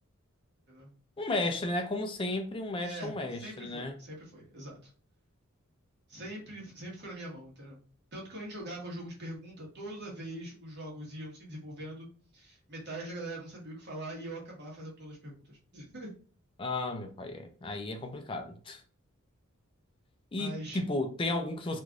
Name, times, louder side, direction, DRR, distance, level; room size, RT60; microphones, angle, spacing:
voice 1, 1.2-3.9 16.6-18.8 20.3-21.8, left 2 dB, 25° left, 0.3 m, -34 dB
voice 2, 2.8-4.9 6.1-7.8 8.1-12.1 12.3-16.1 20.4-20.8, right 1 dB, 50° right, 1.2 m, -42 dB
3.2 x 2.5 x 2.3 m
head